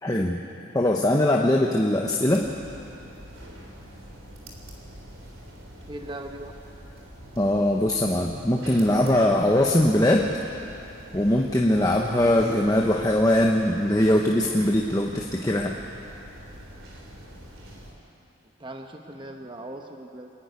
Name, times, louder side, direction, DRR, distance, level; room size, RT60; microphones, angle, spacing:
voice 1, 0.0-0.4 0.7-2.5 7.4-10.3 11.1-15.7, left 1 dB, 15° left, 0 dB, 0.9 m, -21 dB
sound 1, 2.3-17.9, equal, 90° right, 3.4 m, -44 dB
voice 2, 5.9-6.5 18.6-20.3, right 1 dB, 25° right, 3 dB, 1.0 m, -39 dB
27.0 x 11.0 x 9.5 m, 2.9 s
head